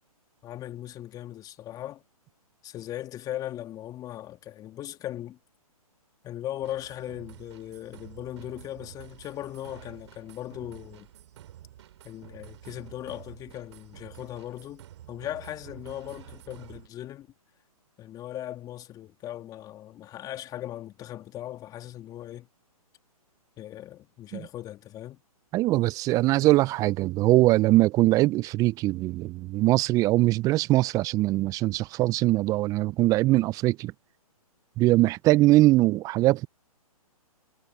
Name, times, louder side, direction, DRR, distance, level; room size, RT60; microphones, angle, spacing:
voice 1, 0.4-2.0 2.6-5.4 6.2-11.1 12.0-17.3 18.0-22.5 23.6-25.2, left 13 dB, 20° left, 2.4 m, -38 dB
sound 1, 6.6-16.9, right 12 dB, 50° right, 5.8 m, -49 dB
voice 2, 25.5-33.9 34.8-36.5, right 18 dB, 20° right, 0.6 m, -22 dB
figure-of-eight pair, 130°, 19 cm